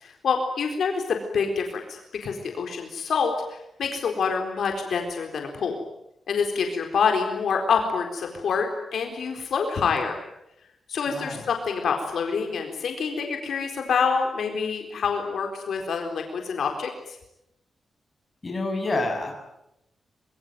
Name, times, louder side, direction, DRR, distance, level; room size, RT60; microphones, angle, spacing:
voice 1, 0.0-5.8 6.3-10.2 10.9-17.2, left 5 dB, 70° left, 3 dB, 4.2 m, -26 dB
voice 2, 11.1-11.5 18.4-19.3, left 2 dB, 25° left, 2 dB, 7.5 m, -28 dB
25.5 x 23.5 x 9.5 m, 0.85 s
wide cardioid pair, 165°, 0 cm